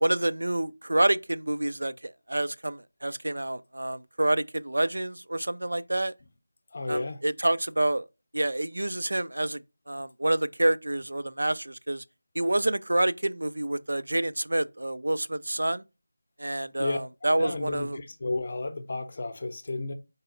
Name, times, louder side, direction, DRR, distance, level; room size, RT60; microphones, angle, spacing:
voice 1, 0.0-6.1 6.9-8.1 8.3-9.6 9.9-12.0 12.4-15.8 16.4-18.0, right 1 dB, 85° right, 0.3 m, -28 dB
voice 2, 6.7-7.2 16.8-17.0 17.4-19.9, left 2 dB, 35° left, 0.6 m, -32 dB
4.0 x 3.9 x 2.5 m
figure-of-eight pair, 175°, 0 cm